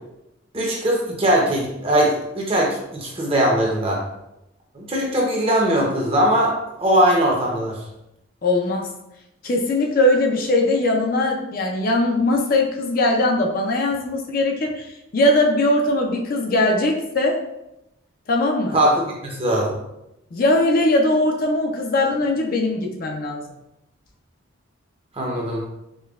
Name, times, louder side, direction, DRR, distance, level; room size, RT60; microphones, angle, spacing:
voice 1, 0.5-4.0 4.7-6.5 6.8-7.8 18.7-19.8 25.2-25.6, right 1 dB, 30° right, -2 dB, 0.7 m, -20 dB
voice 2, 8.4-8.9 9.4-17.4 18.3-18.8 20.3-23.4, left 1 dB, 45° left, 1 dB, 0.4 m, -20 dB
5.1 x 2.2 x 2.3 m, 0.87 s
head